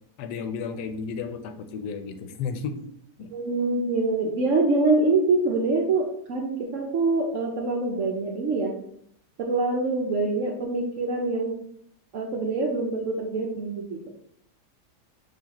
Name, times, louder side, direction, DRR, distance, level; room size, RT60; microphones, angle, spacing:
voice 1, 0.2-2.8 3.2-3.3, left 5 dB, 80° left, 8 dB, 1.2 m, -33 dB
voice 2, 3.3-8.7 9.4-11.5 12.1-14.1, right 3 dB, 65° right, 1 dB, 0.8 m, -25 dB
6.8 x 2.7 x 2.9 m, 0.70 s
omnidirectional pair, 1.8 m